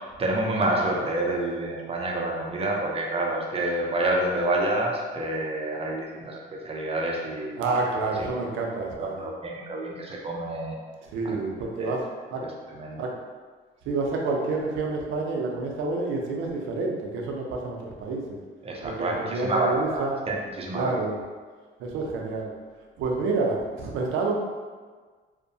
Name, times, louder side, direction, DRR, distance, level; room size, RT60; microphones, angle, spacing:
voice 1, 0.2-7.6 9.0-10.8 11.2-11.4 11.8-11.9 12.7-13.1 18.6-21.0, right 1 dB, 30° right, -1 dB, 0.5 m, -28 dB
voice 2, 7.6-9.3 11.1-12.0 12.3-12.4 13.0-13.1 13.8-18.4 18.8-20.2 20.7-21.2 21.8-22.5 23.0-24.3, right 3 dB, 90° right, 0 dB, 0.5 m, -28 dB
2.6 x 2.1 x 2.6 m, 1.5 s
cardioid pair, 90°, 20 cm